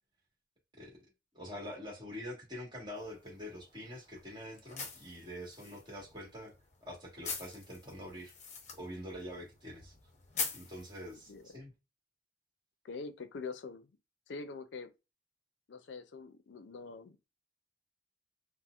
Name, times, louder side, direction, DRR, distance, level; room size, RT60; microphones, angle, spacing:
voice 1, 1.3-6.5 6.8-8.3 8.7-9.9 10.5-11.7, equal, 25° right, 1.3 m, -45 dB
sound 1, 3.0-11.5, left 5 dB, 40° left, 0.7 m, -45 dB
voice 2, 12.8-13.9 14.3-14.9 15.7-17.3, left 4 dB, 80° left, 0.4 m, -44 dB
4.1 x 2.0 x 2.3 m
head